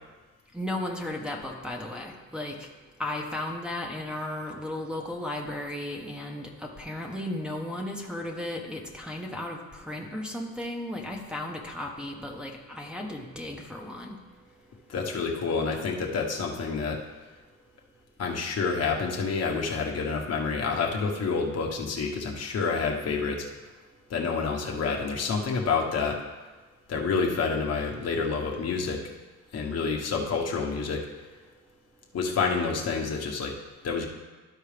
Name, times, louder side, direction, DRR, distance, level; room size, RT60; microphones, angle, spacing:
voice 1, 0.5-2.6 3.0-14.2, left 1 dB, 5° right, -1 dB, 1.1 m, -35 dB
voice 2, 14.9-17.0 18.2-23.4 24.1-26.2 26.9-29.0 29.5-31.1 32.1-33.5 33.8-34.0, left 5 dB, 55° left, 0 dB, 1.2 m, -28 dB
13.0 x 4.6 x 3.4 m, 1.2 s
cardioid pair, 90°, 30 cm